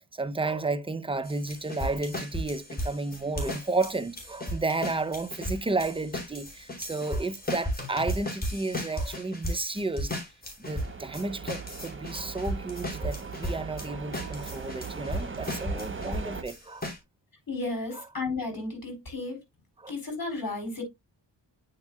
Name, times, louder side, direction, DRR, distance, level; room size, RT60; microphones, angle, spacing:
voice 1, 0.0-10.1 10.6-16.9 19.8-19.9, right 3 dB, 10° right, 0.6 m, -32 dB
sound 1, 1.2-13.9 14.1-17.0, equal, 20° left, 3.1 m, -35 dB
sound 2, 10.6-16.4, right 5 dB, 30° right, 1.0 m, -39 dB
voice 2, 17.5-19.4 19.9-20.8, left 3 dB, 50° left, 3.8 m, -33 dB
9.2 x 4.9 x 2.3 m
cardioid pair, 70°, 43 cm